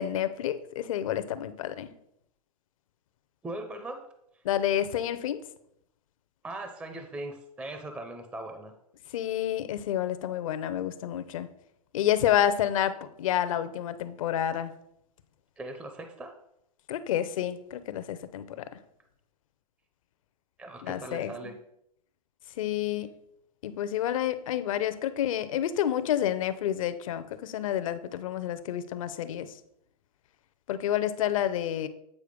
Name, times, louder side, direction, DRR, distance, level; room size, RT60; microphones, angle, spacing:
voice 1, 0.0-1.9 4.4-5.4 9.1-11.5 11.9-14.7 16.9-18.6 20.8-21.5 22.6-23.1 23.6-29.5 30.7-31.9, left 11 dB, 55° left, 13 dB, 0.7 m, -29 dB
voice 2, 3.4-4.1 4.3-4.4 6.4-8.7 15.6-16.3 20.6-21.6, right 2 dB, 5° right, 6 dB, 0.6 m, -39 dB
8.5 x 4.6 x 5.1 m, 0.77 s
hypercardioid pair, 120°, 20 cm